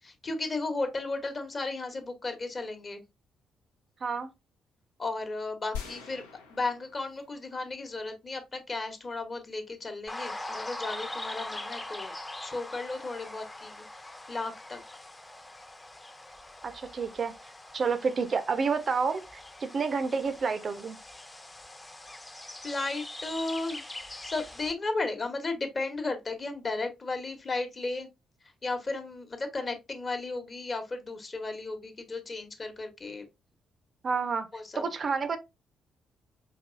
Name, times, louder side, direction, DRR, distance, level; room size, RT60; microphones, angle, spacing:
voice 1, 0.0-3.0 5.0-6.2 6.5-12.1 12.4-14.8 22.6-23.9 24.1-28.1 28.4-33.3 34.5-34.8, left 3 dB, 35° left, 1.0 m, -34 dB
sound 1, 5.7-7.7 8.0-8.1, left 7 dB, 75° left, 0.6 m, -43 dB
sound 2, 10.1-24.7, left 1 dB, 15° left, 0.7 m, -42 dB
voice 2, 16.6-17.3 17.7-21.0 34.0-34.5 34.7-35.4, right 5 dB, 40° right, 0.5 m, -29 dB
5.1 x 3.0 x 2.5 m
figure-of-eight pair, 40°, 0 cm